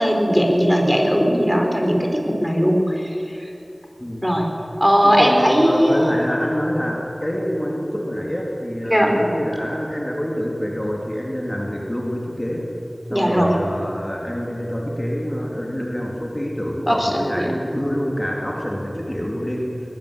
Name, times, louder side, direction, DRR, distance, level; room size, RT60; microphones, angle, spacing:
voice 1, 0.0-3.5 4.2-4.5 4.8-6.1 8.8-9.2 13.1-13.6 16.9-17.5, equal, 5° right, 2 dB, 4.2 m, -18 dB
voice 2, 5.0-12.7 13.1-19.7, equal, 20° left, -2 dB, 3.4 m, -26 dB
21.0 x 21.0 x 8.3 m, 2.8 s
wide cardioid pair, 45°, 0 cm